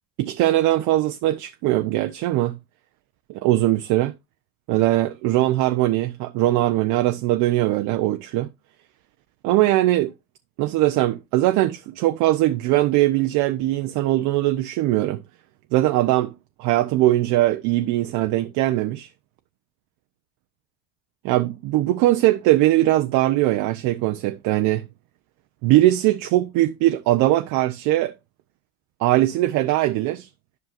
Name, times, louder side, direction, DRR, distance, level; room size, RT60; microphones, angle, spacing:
voice 1, 0.2-2.6 3.3-4.1 4.7-8.5 9.4-10.1 10.6-15.2 15.7-16.3 16.6-19.1 21.2-24.8 25.6-28.1 29.0-30.3, right 16 dB, 50° right, 0.6 m, -20 dB
11.0 x 5.6 x 2.5 m
hypercardioid pair, 75°, 42 cm